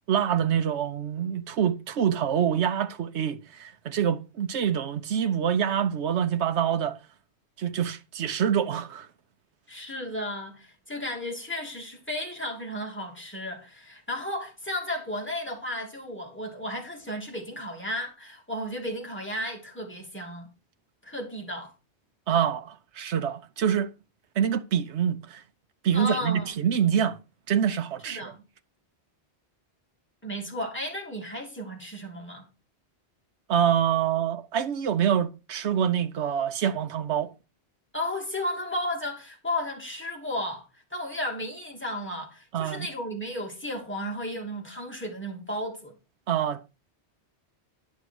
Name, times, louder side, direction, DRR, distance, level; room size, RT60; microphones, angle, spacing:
voice 1, 0.1-7.0 7.6-9.1 22.3-23.9 24.4-25.4 25.8-27.2 27.5-28.3 33.5-37.3 42.5-42.9 46.3-46.7, right 8 dB, 85° right, 1.1 m, -26 dB
voice 2, 9.7-20.5 21.0-21.7 25.9-26.5 28.0-28.4 30.2-32.5 37.9-46.0, left 1 dB, 10° left, 2.8 m, -34 dB
10.5 x 6.5 x 4.7 m
omnidirectional pair, 1.1 m